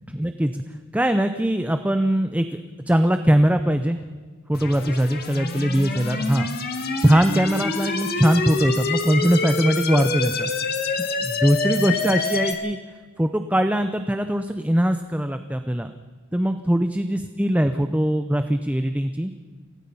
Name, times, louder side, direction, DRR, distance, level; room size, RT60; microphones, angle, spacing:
voice 1, 0.1-0.6 0.9-4.0 4.5-6.5 7.0-10.5 11.0-12.8 13.2-15.9 16.3-19.3, equal, 5° right, 8 dB, 0.6 m, -21 dB
sound 1, 4.5-12.5, left 3 dB, 50° left, 1.9 m, -27 dB
28.0 x 17.5 x 5.5 m, 1.5 s
head